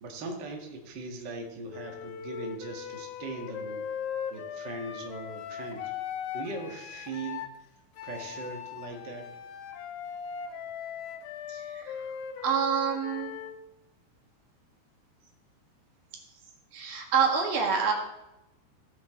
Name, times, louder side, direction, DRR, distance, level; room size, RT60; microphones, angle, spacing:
voice 1, 0.0-3.9 4.3-5.9 6.3-7.5 8.0-9.3, right 3 dB, 80° right, 1 dB, 0.9 m, -39 dB
Wind instrument woodwind instrument, 1.7-7.5 8.0-13.6, left 8 dB, 75° left, 2.5 m, -39 dB
voice 2, 11.5-12.0 12.4-13.3 16.7-17.9, right 6 dB, 55° right, 1 dB, 2.9 m, -27 dB
17.0 x 9.0 x 3.7 m, 0.94 s
omnidirectional pair, 4.9 m